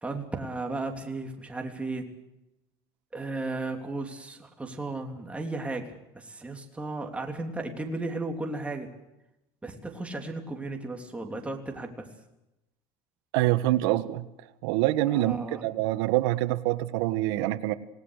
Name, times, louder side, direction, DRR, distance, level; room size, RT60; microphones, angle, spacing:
voice 1, 0.0-2.1 3.1-8.9 9.6-12.1 15.1-15.6, right 2 dB, 10° right, 3 dB, 3.4 m, -35 dB
voice 2, 13.3-14.2 14.6-17.7, right 16 dB, 80° right, 11 dB, 1.6 m, -25 dB
27.5 x 19.0 x 6.6 m, 0.93 s
cardioid pair, 130°, 14 cm